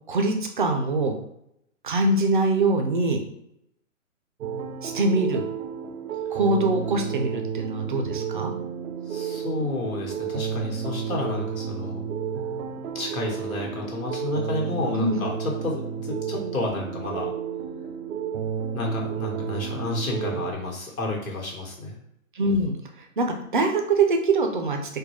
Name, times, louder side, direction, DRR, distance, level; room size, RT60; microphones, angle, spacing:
voice 1, 0.1-1.2 1.8-3.2 4.8-5.4 6.3-8.5 15.0-15.2 22.3-22.8 23.2-23.3 23.5-24.8, right 2 dB, 40° right, 4 dB, 0.4 m, -23 dB
sound 1, 4.4-20.5, right 7 dB, 90° right, 0.6 m, -31 dB
voice 2, 9.1-12.0 12.9-17.3 18.7-22.0, left 2 dB, 80° left, -1 dB, 1.3 m, -31 dB
3.8 x 2.2 x 3.1 m, 0.77 s
hypercardioid pair, 155°, 41 cm